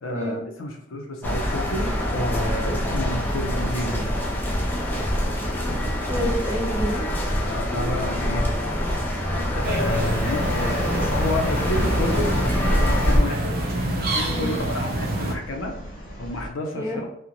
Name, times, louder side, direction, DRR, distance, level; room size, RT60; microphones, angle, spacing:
voice 1, 0.0-4.1 7.4-8.5 9.4-12.3 12.6-15.7 16.2-17.1, left 1 dB, 75° left, 1 dB, 0.5 m, -30 dB
sound 1, 1.2-13.2, equal, 10° left, 0.4 m, -25 dB
sound 2, 1.3-16.5, equal, 45° left, 0.8 m, -38 dB
voice 2, 6.0-7.1 9.2-9.5 14.3-14.5 16.7-17.0, equal, 15° right, -4 dB, 0.8 m, -29 dB
sound 3, 9.6-15.3, right 1 dB, 50° right, 0.5 m, -27 dB
2.5 x 2.1 x 2.9 m, 0.75 s
head